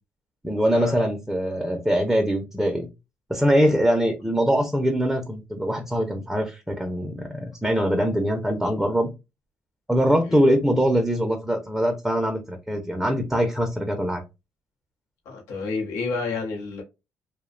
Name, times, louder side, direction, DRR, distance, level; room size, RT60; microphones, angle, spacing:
voice 1, 0.4-2.9 3.3-9.1 9.9-14.2, equal, 5° right, 0.5 m, -23 dB
voice 2, 15.3-16.8, left 4 dB, 85° left, 0.7 m, -30 dB
2.5 x 2.1 x 2.4 m
cardioid pair, 90°, 5 cm